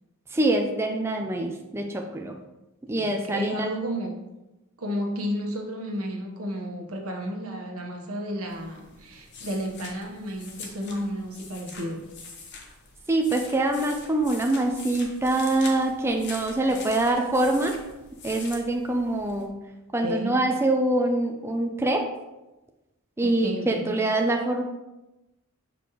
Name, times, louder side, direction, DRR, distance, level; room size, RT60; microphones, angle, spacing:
voice 1, 0.3-2.4 2.9-3.7 13.1-17.8 18.2-19.5 19.9-22.1 23.2-24.6, right 2 dB, 10° right, 2 dB, 0.4 m, -24 dB
voice 2, 2.9-4.1 4.8-12.1 20.0-20.4 23.2-23.9, equal, 75° right, 1 dB, 1.1 m, -32 dB
sound 1, 8.5-19.5, left 4 dB, 50° left, 1.0 m, -44 dB
6.3 x 5.1 x 3.0 m, 1.0 s
head